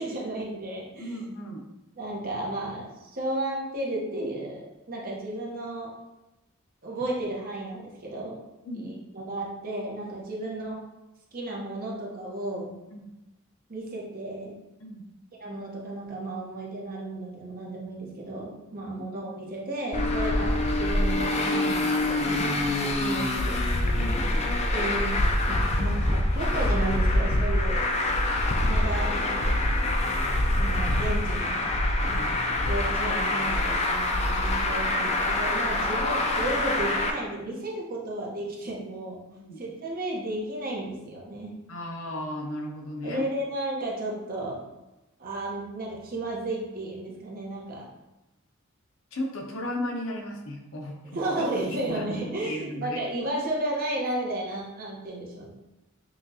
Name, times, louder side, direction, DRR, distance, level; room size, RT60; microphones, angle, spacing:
voice 1, 0.0-1.1 2.0-5.9 6.8-8.4 8.7-10.8 11.3-12.7 13.7-14.5 15.4-23.6 24.7-25.2 25.5-27.8 28.7-29.6 30.5-31.6 32.6-39.2 39.6-41.6 43.0-44.6 45.2-47.9 51.1-55.5, right 1 dB, 45° right, -3 dB, 0.9 m, -33 dB
voice 2, 1.0-1.6 8.6-8.9 12.9-13.1 14.8-15.0 18.8-19.0 24.0-24.5 32.0-32.3 39.4-39.6 41.7-43.2 49.1-52.0 52.4-53.0, left 1 dB, 65° left, 1 dB, 0.7 m, -35 dB
Traffic noise roadway noise, 19.9-37.1, left 1 dB, 30° left, 0.4 m, -25 dB
5.7 x 2.4 x 2.7 m, 0.99 s
head